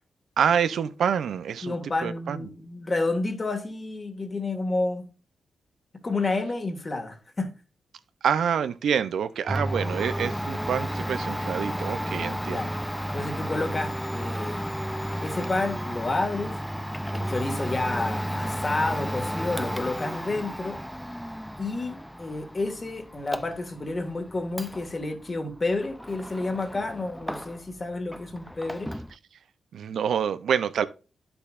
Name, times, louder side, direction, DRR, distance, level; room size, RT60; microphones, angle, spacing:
voice 1, 0.4-1.7 2.0-2.4 8.2-12.6 29.7-30.9, right 8 dB, 80° right, 0.5 m, -26 dB
voice 2, 1.6-5.1 6.0-7.5 12.4-14.6 15.2-16.6 17.1-20.8 21.6-28.9, left 2 dB, 35° left, 1.8 m, -30 dB
Domestic sounds home sounds, 9.5-27.8 28.1-29.1, equal, ahead, 0.4 m, -33 dB
9.7 x 7.0 x 2.4 m
cardioid pair, 75°, 0 cm